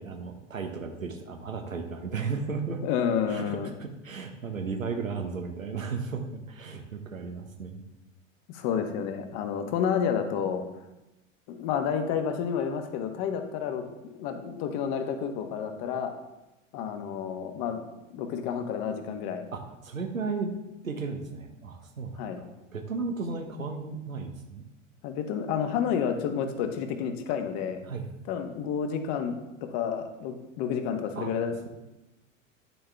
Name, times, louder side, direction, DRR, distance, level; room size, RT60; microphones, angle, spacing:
voice 1, 0.0-2.8 3.3-7.8 19.5-20.6 20.8-24.6 27.8-28.1 31.1-31.5, right 4 dB, 85° right, 3 dB, 1.0 m, -35 dB
voice 2, 2.8-3.7 8.5-10.6 11.5-16.1 16.7-17.8 18.1-19.4 22.2-22.4 25.0-27.8 28.3-31.7, left 7 dB, 45° left, 6 dB, 1.3 m, -30 dB
10.0 x 6.6 x 3.4 m, 0.99 s
figure-of-eight pair, 85°, 39 cm